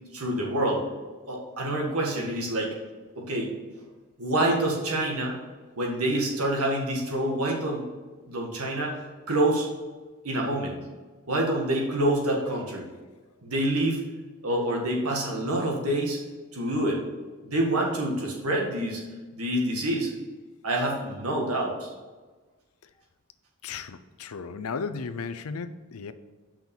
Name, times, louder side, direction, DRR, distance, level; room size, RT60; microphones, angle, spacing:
voice 1, 0.1-0.8 1.3-2.7 3.2-3.5 4.2-5.3 5.8-7.8 8.3-9.0 9.3-9.7 10.2-10.8 11.3-12.8 13.4-14.0 14.4-16.2 16.5-17.0 17.4-19.0 19.3-20.1 20.6-21.9, right 1 dB, 75° right, -1 dB, 1.8 m, -27 dB
voice 2, 23.6-26.1, left 5 dB, 70° left, 12 dB, 0.5 m, -35 dB
5.9 x 5.9 x 7.1 m, 1.3 s
head